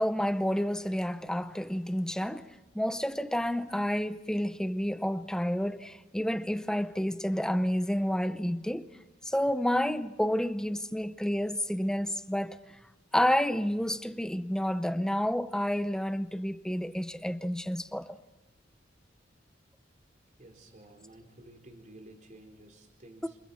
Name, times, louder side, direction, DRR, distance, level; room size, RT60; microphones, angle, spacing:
voice 1, 0.0-8.9 9.3-12.6 13.1-18.2, equal, 5° left, 0.7 m, -30 dB
voice 2, 20.4-23.4, right 1 dB, 45° right, 4.0 m, -52 dB
29.5 x 27.0 x 4.2 m
head